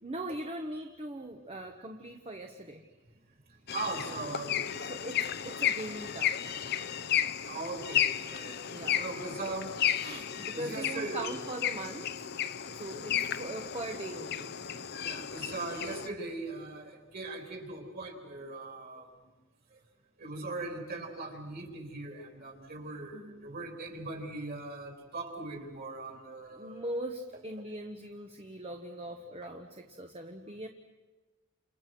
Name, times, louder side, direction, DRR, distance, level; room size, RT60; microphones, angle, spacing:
voice 1, 0.0-2.8 4.8-6.5 8.7-9.0 9.5-9.6 10.4-12.3 12.7-14.6 23.1-23.5 26.5-30.7, right 1 dB, 30° right, 4 dB, 1.1 m, -40 dB
sound 1, 3.7-16.1, left 10 dB, 50° left, 0.8 m, -33 dB
voice 2, 3.7-4.7 7.5-8.6 8.9-11.4 15.0-19.1 20.2-26.8 27.3-27.4, right 2 dB, 45° right, 2 dB, 4.1 m, -40 dB
29.5 x 28.0 x 6.1 m, 1.2 s
head